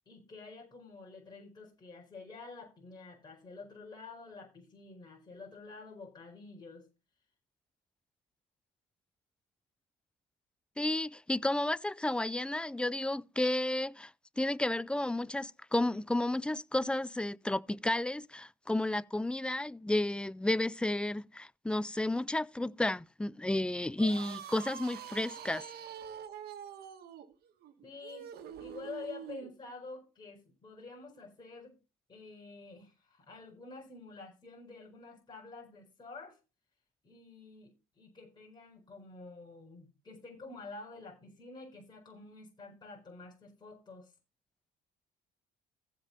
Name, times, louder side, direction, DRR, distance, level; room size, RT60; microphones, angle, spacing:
voice 1, 0.1-6.9 27.8-28.3 28.6-31.8 32.1-36.4 37.0-44.1, left 3 dB, 25° left, 4.5 m, -49 dB
voice 2, 10.8-14.1 14.4-25.6, left 1 dB, 5° left, 0.4 m, -32 dB
sound 1, 23.9-29.5, right 9 dB, 65° right, 1.5 m, -45 dB
15.5 x 5.1 x 4.1 m
cardioid pair, 110°, 17 cm